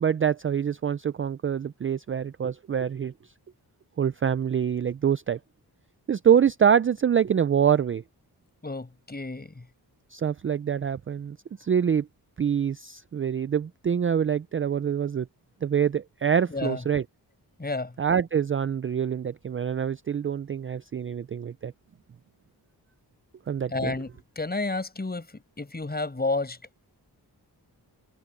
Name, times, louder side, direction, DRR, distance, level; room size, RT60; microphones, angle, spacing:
voice 1, 0.0-3.1 4.0-5.4 6.1-8.0 10.1-12.1 12.4-15.3 15.6-17.0 18.0-21.7 23.5-23.9, right 8 dB, 35° right, 0.4 m, -25 dB
voice 2, 8.6-9.6 16.5-16.8 17.6-17.9 23.7-24.1 24.4-26.6, left 3 dB, 25° left, 6.2 m, -31 dB
wide cardioid pair, 135°, 39 cm